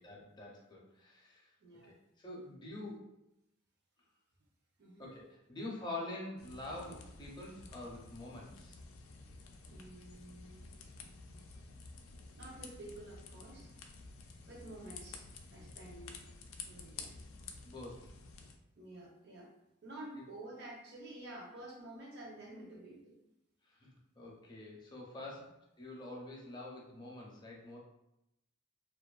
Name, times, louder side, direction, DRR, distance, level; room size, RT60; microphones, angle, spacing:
voice 1, 0.0-1.5 1.8-3.1 5.0-8.8 17.6-18.1 23.6-27.8, left 2 dB, 20° left, -2 dB, 0.5 m, -46 dB
voice 2, 1.6-1.9 4.8-5.1 9.7-10.7 12.3-13.7 14.5-15.2 15.5-16.2 16.7-17.1 18.8-19.5 19.8-23.2, right 1 dB, 55° right, -2 dB, 0.6 m, -50 dB
sound 1, 6.4-18.6, left 4 dB, 80° left, 0.3 m, -51 dB
2.5 x 2.3 x 2.2 m, 0.86 s
head